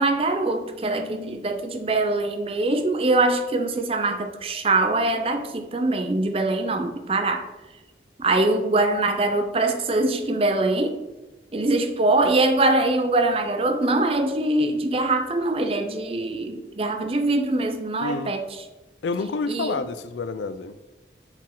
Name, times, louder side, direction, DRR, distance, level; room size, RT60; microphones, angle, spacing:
voice 1, 0.0-7.5 8.2-11.0 11.5-18.5 19.5-19.8, right 2 dB, 30° right, 6 dB, 0.5 m, -23 dB
voice 2, 18.0-18.3 19.0-20.8, left 3 dB, 90° left, 12 dB, 0.4 m, -28 dB
6.2 x 4.1 x 3.8 m, 1.1 s
head